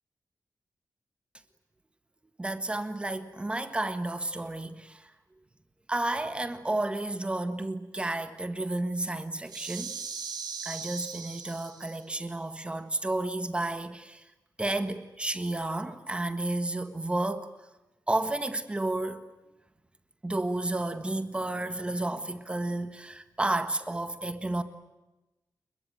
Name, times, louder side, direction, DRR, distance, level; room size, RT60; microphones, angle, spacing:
voice 1, 2.4-5.1 5.9-10.0 10.6-14.3 14.6-17.5 18.1-19.2 20.2-24.6, right 2 dB, 15° right, 1.6 m, -31 dB
sound 1, 9.5-12.0, right 6 dB, 90° right, 5.3 m, -39 dB
28.5 x 22.5 x 9.1 m
wide cardioid pair, 175°, 7 cm